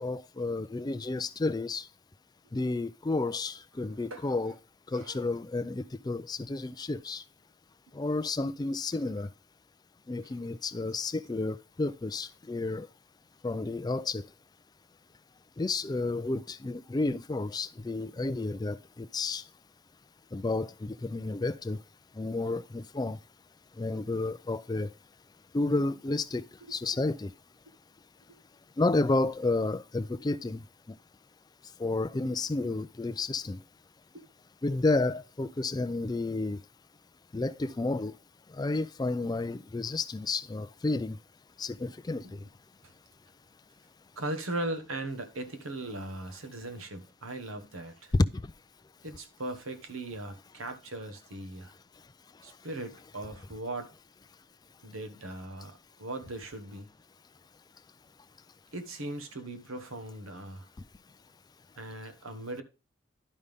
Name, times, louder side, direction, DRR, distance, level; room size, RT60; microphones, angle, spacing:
voice 1, 0.0-1.9 2.5-4.5 4.9-7.2 7.9-9.3 10.1-12.9 13.4-14.2 15.6-19.4 20.3-21.8 22.2-23.2 23.8-24.9 25.5-26.4 26.7-27.3 28.8-31.0 31.8-33.6 34.6-36.6 37.3-38.1 38.5-41.2 41.6-42.4 48.1-48.3, left 2 dB, 20° left, 0.3 m, -31 dB
voice 2, 44.2-48.1 49.0-51.7 52.4-53.9 54.8-56.9 58.7-60.7 61.8-62.6, right 2 dB, 80° right, 1.3 m, -39 dB
11.0 x 5.4 x 3.5 m
head